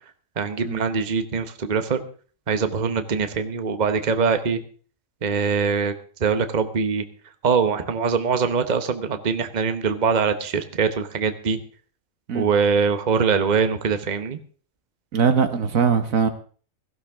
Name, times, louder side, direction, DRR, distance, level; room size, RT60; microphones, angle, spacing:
voice 1, 0.4-2.0 2.5-4.6 5.2-5.9 6.2-7.0 7.4-11.6 12.3-14.4, right 5 dB, 35° right, 1.1 m, -23 dB
voice 2, 15.1-16.3, right 6 dB, 80° right, 1.6 m, -21 dB
17.0 x 15.0 x 3.6 m
omnidirectional pair, 1.4 m